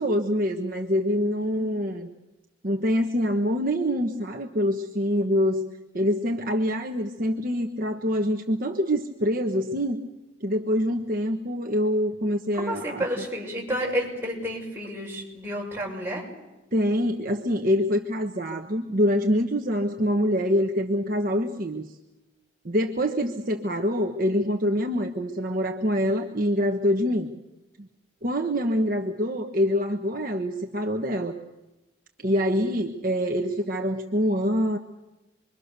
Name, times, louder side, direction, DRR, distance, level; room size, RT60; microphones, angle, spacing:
voice 1, 0.0-2.1 2.6-5.6 5.9-10.0 10.4-13.0 16.7-21.9 22.6-27.3 28.2-31.3 32.2-34.8, equal, 45° right, 3 dB, 1.3 m, -25 dB
voice 2, 1.4-1.7 12.5-16.2, equal, 10° right, -2 dB, 6.8 m, -31 dB
26.5 x 23.5 x 6.8 m, 1.0 s
head